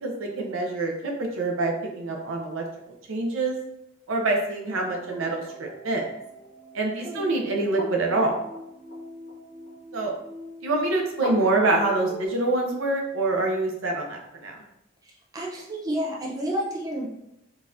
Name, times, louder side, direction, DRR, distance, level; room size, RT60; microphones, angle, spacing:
voice 1, 0.0-2.6 3.1-3.6 4.1-6.0 6.7-8.3 9.9-10.1 10.6-14.6, right 2 dB, 75° right, 1 dB, 0.6 m, -26 dB
sound 1, 4.7-12.3, left 1 dB, 65° left, 1.3 m, -41 dB
voice 2, 15.0-17.1, equal, 15° right, -3 dB, 0.4 m, -30 dB
3.8 x 2.4 x 2.6 m, 0.83 s
head